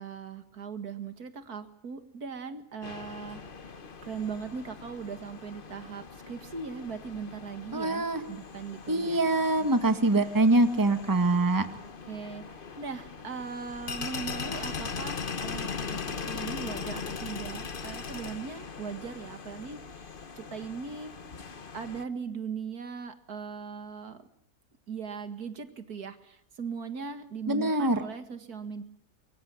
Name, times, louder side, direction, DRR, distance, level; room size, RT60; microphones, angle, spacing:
voice 1, 0.0-3.4 4.0-9.2 9.6-9.7 12.1-20.1 20.4-21.1 21.7-24.2 24.9-28.8, right 5 dB, 75° right, 9 dB, 2.4 m, -39 dB
sound 1, 2.8-22.0, left 5 dB, 35° left, 1.2 m, -40 dB
voice 2, 7.7-8.2 8.9-11.7 27.5-28.0, right 2 dB, 15° right, 9 dB, 1.6 m, -24 dB
24.0 x 24.0 x 8.4 m, 0.68 s
omnidirectional pair, 1.6 m